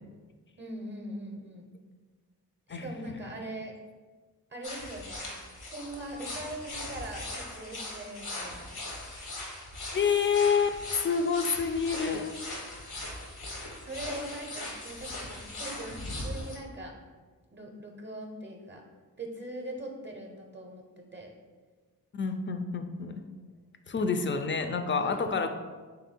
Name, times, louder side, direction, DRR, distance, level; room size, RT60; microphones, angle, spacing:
voice 1, 0.6-1.7 2.7-3.7 4.5-5.3 5.6-8.7 13.8-16.9 17.5-18.8 19.2-20.8 21.1-21.3 25.0-25.3, right 1 dB, 30° right, 1 dB, 0.7 m, -41 dB
Autumn Leaves, 4.6-16.6, left 2 dB, 80° left, 0.9 m, -40 dB
voice 2, 9.9-12.3 22.1-23.2 23.9-25.5, left 5 dB, 30° left, 7 dB, 0.4 m, -28 dB
3.3 x 2.7 x 4.3 m, 1.4 s
cardioid pair, 40°, 38 cm